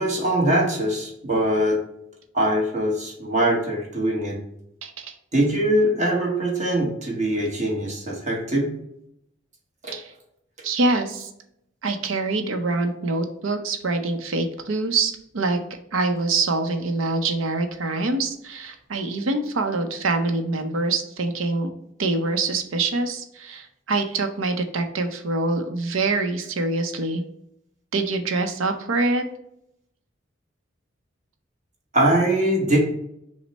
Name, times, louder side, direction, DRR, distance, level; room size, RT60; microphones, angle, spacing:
voice 1, 0.0-1.8 2.3-4.4 5.3-8.7 9.8-10.0 31.9-32.8, right 1 dB, 35° right, -2 dB, 1.1 m, -22 dB
voice 2, 4.8-5.1 9.9-10.1 10.6-11.3 11.8-15.6 15.9-21.7 22.0-27.2 27.9-29.3, right 3 dB, 90° right, 6 dB, 0.7 m, -25 dB
6.1 x 2.1 x 4.1 m, 0.76 s
head